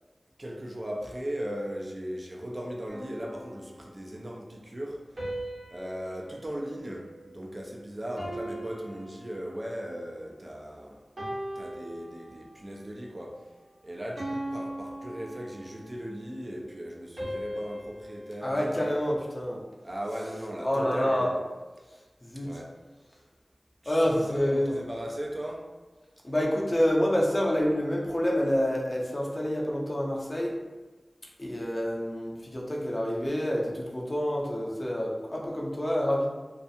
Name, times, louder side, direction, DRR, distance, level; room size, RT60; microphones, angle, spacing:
voice 1, 0.4-5.4 5.7-11.0 11.6-13.5 13.8-19.2 19.8-21.3 22.4-22.8 23.8-25.7, equal, 40° right, 0 dB, 0.4 m, -38 dB
sound 1, 2.9-4.2 5.2-7.7 8.2-9.9 10.4-10.7 11.2-12.7 13.2-13.5 14.2-16.1 17.2-19.5, right 1 dB, 65° right, 1.1 m, -40 dB
voice 2, 18.4-19.6 20.6-21.3 22.2-22.5 23.9-24.7 26.2-30.5 31.4-36.3, equal, 35° left, -3 dB, 0.5 m, -27 dB
2.4 x 2.3 x 2.6 m, 1.2 s
wide cardioid pair, 50°, 0 cm